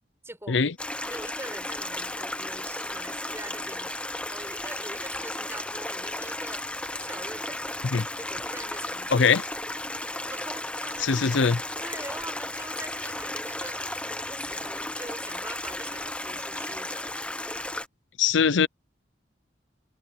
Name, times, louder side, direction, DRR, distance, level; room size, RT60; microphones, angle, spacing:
voice 1, 0.2-0.7 1.1-3.9 4.3-6.7 7.0-7.7 8.2-9.5 10.3-11.2 11.8-17.1, right 1 dB, 15° right, 6.9 m, -43 dB
Stream, 0.8-17.9, left 1 dB, 5° left, 0.8 m, -34 dB
voice 2, 9.1-9.4 11.1-11.6 18.2-18.7, left 5 dB, 75° left, 0.6 m, -21 dB
head